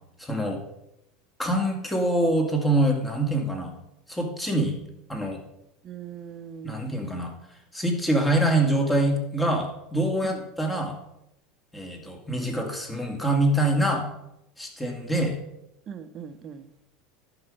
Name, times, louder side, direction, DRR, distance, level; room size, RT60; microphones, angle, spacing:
voice 1, 0.2-0.6 1.4-3.8 4.1-4.8 5.1-5.4 6.6-7.3 7.7-11.0 11.7-14.1 14.6-15.4, right 1 dB, 10° left, 2 dB, 2.2 m, -25 dB
voice 2, 5.8-6.9 10.2-10.4 15.9-16.7, right 8 dB, 40° right, 10 dB, 1.0 m, -40 dB
11.0 x 5.1 x 5.4 m, 0.84 s
hypercardioid pair, 95°, 0 cm